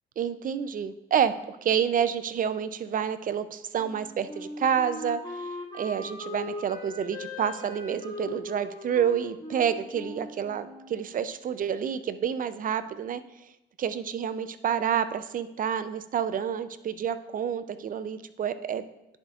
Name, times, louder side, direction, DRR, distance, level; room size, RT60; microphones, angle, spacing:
voice 1, 0.2-13.2 13.8-18.8, right 8 dB, 45° right, 12 dB, 0.5 m, -29 dB
Wind instrument woodwind instrument, 3.8-11.3, left 1 dB, 20° left, 1.7 m, -40 dB
10.5 x 5.1 x 2.4 m, 0.92 s
cardioid pair, 90°, 20 cm